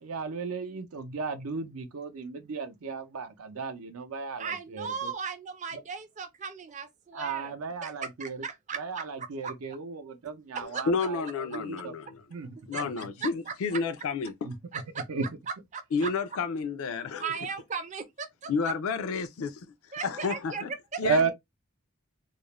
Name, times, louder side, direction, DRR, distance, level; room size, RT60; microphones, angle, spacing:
voice 1, 0.0-4.9 7.1-8.4 8.8-11.9 12.3-12.6 14.4-14.5 15.1-15.2 21.0-21.3, right 4 dB, 80° right, 0.5 m, -34 dB
voice 2, 4.4-9.5 10.5-10.9 12.7-13.8 14.7-15.0 15.7-16.1 17.2-18.7 19.9-21.0, right 6 dB, 35° right, 0.4 m, -37 dB
voice 3, 10.9-12.2 12.7-14.3 15.9-17.3 18.5-19.6 20.0-20.7 21.0-21.3, left 4 dB, 75° left, 0.4 m, -30 dB
2.4 x 2.0 x 3.0 m
head